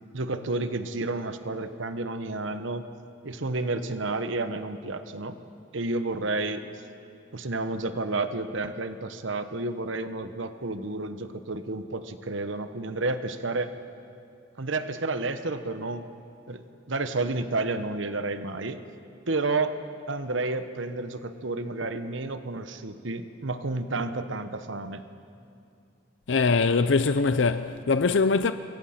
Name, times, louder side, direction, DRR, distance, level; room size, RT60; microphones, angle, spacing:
voice 1, 0.1-2.9 3.2-5.4 5.7-6.6 7.3-13.7 14.6-16.1 16.5-18.8 19.3-19.7 20.1-25.0, right 2 dB, 75° right, 1.1 m, -31 dB
voice 2, 26.3-28.5, left 4 dB, 70° left, 0.6 m, -22 dB
26.5 x 23.0 x 5.9 m
head